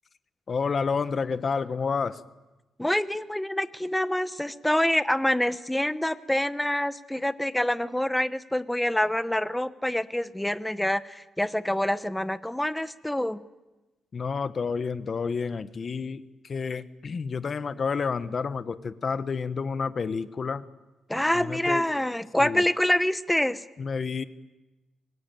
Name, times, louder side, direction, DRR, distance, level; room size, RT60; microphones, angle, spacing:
voice 1, 0.5-2.2 14.1-20.6 21.3-21.8 22.4-22.6 23.8-24.2, left 5 dB, 35° left, 12 dB, 1.1 m, -30 dB
voice 2, 2.8-13.4 21.1-23.6, left 1 dB, 5° left, 13 dB, 0.9 m, -26 dB
25.0 x 20.5 x 9.2 m, 1.1 s
cardioid pair, 135°, 0 cm